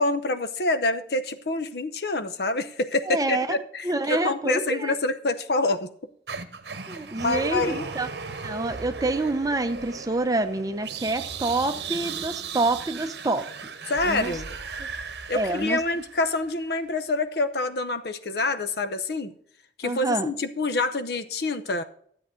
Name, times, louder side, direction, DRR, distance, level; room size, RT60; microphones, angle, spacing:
voice 1, 0.0-5.9 7.2-7.9 13.9-14.6 15.3-19.3 19.8-21.8, left 2 dB, 60° left, 0.7 m, -26 dB
voice 2, 3.1-3.6 3.8-5.0 6.9-8.1 8.4-13.5 14.0-14.4 14.8-14.9 15.3-15.8 19.8-20.3, right 2 dB, 20° right, 0.7 m, -27 dB
sound 1, 6.3-16.4, right 5 dB, 65° right, 0.9 m, -36 dB
13.0 x 8.0 x 3.7 m
head